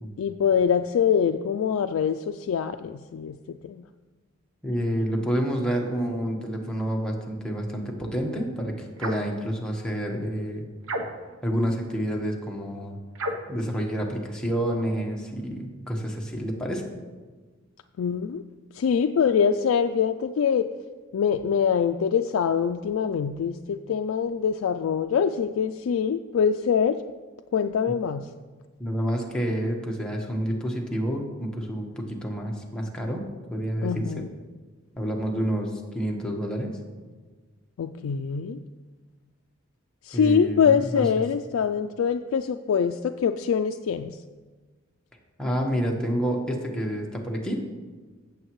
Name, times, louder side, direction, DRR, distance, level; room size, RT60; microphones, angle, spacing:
voice 1, 0.2-3.8 18.0-18.4 18.8-20.6 21.1-27.0 27.5-28.3 33.8-34.2 37.8-38.6 40.1-44.2, left 7 dB, 80° left, 6 dB, 0.3 m, -24 dB
voice 2, 4.6-10.6 11.4-13.0 13.5-16.8 27.9-28.0 28.8-34.2 35.0-36.8 40.1-41.1 45.4-47.7, equal, 5° left, -1 dB, 1.2 m, -29 dB
sound 1, 9.0-9.4 10.8-11.4 13.1-13.6, right 1 dB, 85° right, 0.9 m, -32 dB
15.0 x 7.1 x 3.1 m, 1.4 s
head